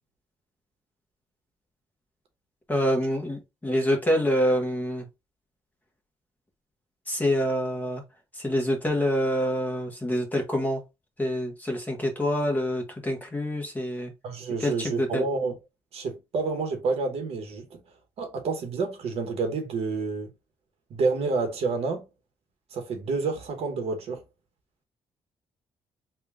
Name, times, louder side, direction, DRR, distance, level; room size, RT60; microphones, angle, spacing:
voice 1, 2.7-5.1 7.1-8.0 8.3-10.8 11.2-14.1 14.6-15.2, equal, 15° left, 1.1 m, -26 dB
voice 2, 14.2-15.6 15.9-17.8 18.2-20.3 20.9-22.0 22.7-24.2, right 4 dB, 70° right, 1.2 m, -29 dB
3.5 x 2.4 x 3.5 m
cardioid pair, 110°, 11 cm